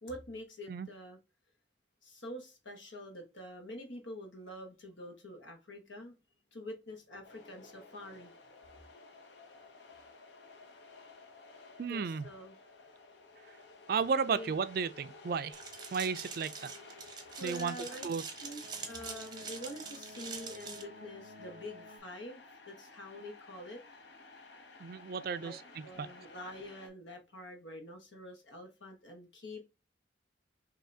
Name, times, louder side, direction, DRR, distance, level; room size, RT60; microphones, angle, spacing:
voice 1, 0.0-1.2 2.0-6.2 6.5-8.4 11.9-12.6 14.3-14.5 17.4-18.0 18.4-23.8 25.4-29.6, equal, 85° left, 1.3 m, -46 dB
sound 1, 7.2-26.9, left 3 dB, 70° left, 0.8 m, -55 dB
voice 2, 11.8-12.2 13.9-15.6 15.9-16.7 17.4-17.8 18.0-18.2 24.8-26.1, right 5 dB, 50° right, 0.3 m, -34 dB
sound 2, 15.5-20.8, right 5 dB, 20° right, 0.7 m, -45 dB
sound 3, 16.1-22.0, left 1 dB, 40° left, 1.4 m, -55 dB
5.4 x 2.8 x 2.7 m
head